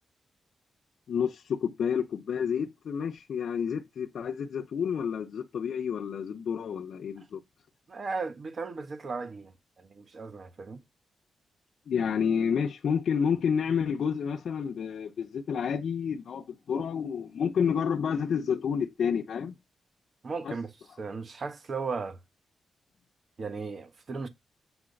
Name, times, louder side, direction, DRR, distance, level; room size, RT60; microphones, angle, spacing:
voice 1, 1.1-7.4 11.9-19.5 20.4-20.5, left 7 dB, 70° left, 0.7 m, -29 dB
voice 2, 7.9-10.8 20.2-20.7 21.0-22.2 23.4-24.3, right 4 dB, 45° right, 1.2 m, -36 dB
8.1 x 3.2 x 5.2 m
wide cardioid pair, 135°, 0 cm